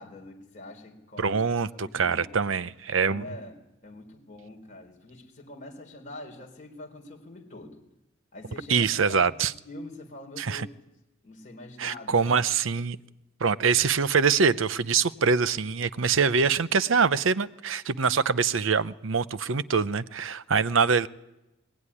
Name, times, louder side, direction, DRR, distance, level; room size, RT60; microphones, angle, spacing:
voice 1, 0.0-1.4 1.7-2.3 3.0-3.6 3.8-7.8 8.3-9.4 9.6-10.7 11.2-12.4 13.5-13.6, left 1 dB, 35° left, 4.3 m, -44 dB
voice 2, 1.2-3.2 8.7-9.5 10.4-10.7 11.8-13.0 13.4-21.1, right 5 dB, 65° right, 0.7 m, -24 dB
21.5 x 17.0 x 9.9 m
head